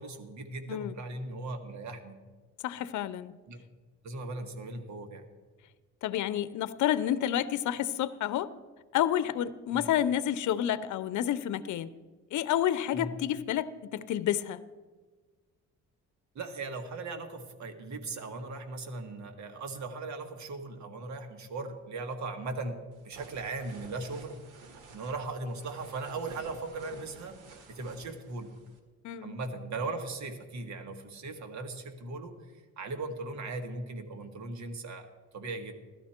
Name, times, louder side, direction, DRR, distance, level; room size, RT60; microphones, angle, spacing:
voice 1, 0.0-2.2 3.5-3.6 4.0-5.2 9.7-9.9 12.9-13.2 16.3-24.4 24.9-27.4 27.7-28.5 29.2-35.1 35.3-35.7, right 3 dB, 65° right, 6 dB, 1.7 m, -38 dB
voice 2, 2.6-3.3 6.0-8.5 8.9-11.9 12.3-14.6 29.0-29.4, left 11 dB, 75° left, 15 dB, 0.7 m, -29 dB
sound 1, 22.9-28.8, right 4 dB, 85° right, 1.8 m, -52 dB
16.0 x 12.5 x 4.4 m, 1.3 s
cardioid pair, 90°, 30 cm